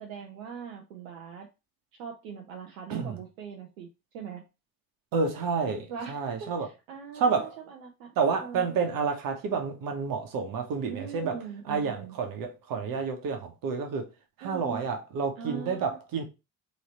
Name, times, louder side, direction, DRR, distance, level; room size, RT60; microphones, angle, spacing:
voice 1, 0.0-1.5 2.0-3.9 4.1-4.5 5.9-8.8 10.9-12.2 14.4-14.8 15.4-16.0, right 7 dB, 70° right, 0.8 m, -41 dB
voice 2, 2.9-3.2 5.1-6.7 7.1-7.6 8.2-14.1 14.4-16.3, right 5 dB, 55° right, 1.3 m, -30 dB
3.8 x 3.3 x 4.3 m
figure-of-eight pair, 50°, 41 cm